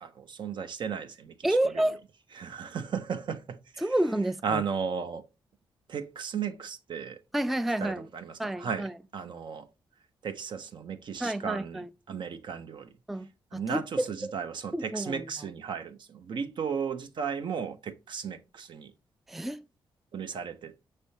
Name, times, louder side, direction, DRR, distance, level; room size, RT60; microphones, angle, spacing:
voice 1, 0.0-1.8 2.4-3.9 4.4-5.3 5.9-7.2 7.8-8.9 9.1-9.7 10.2-12.9 13.5-18.9 20.1-20.8, right 6 dB, 65° right, 0.6 m, -35 dB
voice 2, 1.4-2.0 3.8-4.6 7.3-8.1 8.4-8.9 11.2-11.9 13.1-14.3 14.7-15.2 19.3-19.6, right 1 dB, ahead, 0.3 m, -29 dB
5.4 x 3.3 x 2.7 m
cardioid pair, 65°, 9 cm